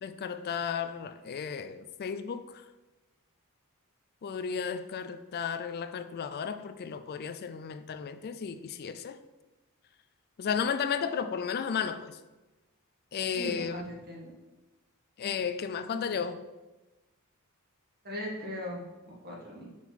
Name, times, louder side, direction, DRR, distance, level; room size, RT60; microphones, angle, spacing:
voice 1, 0.0-2.6 4.2-9.2 10.4-12.2 13.1-13.8 15.2-16.4, left 6 dB, 45° left, 11 dB, 0.3 m, -34 dB
voice 2, 13.3-14.3 18.0-19.7, equal, 45° right, -3 dB, 1.8 m, -39 dB
6.2 x 5.8 x 4.1 m, 1.1 s
head